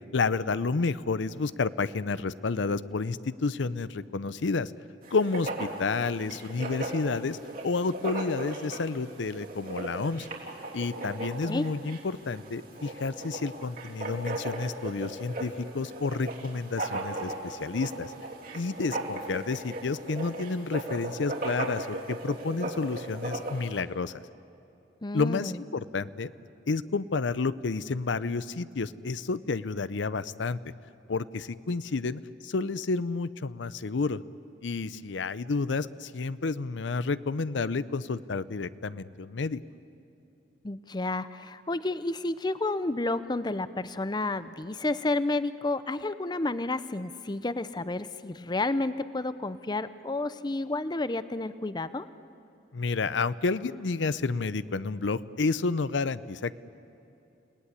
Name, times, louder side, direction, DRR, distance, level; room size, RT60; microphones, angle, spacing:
voice 1, 0.1-4.7 5.1-7.4 7.6-10.3 10.7-18.1 18.5-24.1 25.1-26.3 26.7-30.6 31.1-34.2 34.6-39.6 52.7-56.6, left 4 dB, 85° left, 16 dB, 0.6 m, -30 dB
Writing, 5.0-23.8, right 2 dB, 55° right, 3.4 m, -37 dB
voice 2, 25.0-25.6 40.6-52.1, left 2 dB, 25° left, 14 dB, 0.6 m, -31 dB
30.0 x 18.5 x 9.8 m, 2.8 s
head